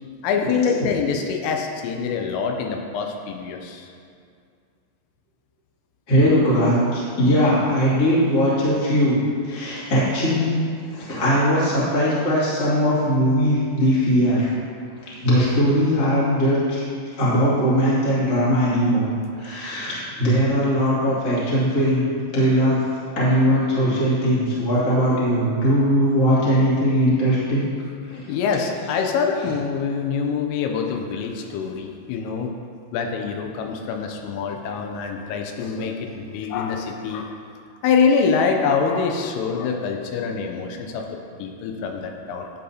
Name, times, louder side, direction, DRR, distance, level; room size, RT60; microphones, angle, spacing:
voice 1, 0.2-3.9 28.3-32.5 32.9-37.3 37.8-41.1 41.4-42.5, left 5 dB, 85° left, 3 dB, 3.3 m, -25 dB
voice 2, 6.1-9.2 9.4-10.6 10.9-14.5 15.2-16.8 17.2-19.1 19.4-22.8 23.1-27.7 28.1-28.3, equal, 35° left, -9 dB, 1.6 m, -20 dB
11.5 x 7.8 x 2.8 m, 2.2 s
omnidirectional pair, 5.8 m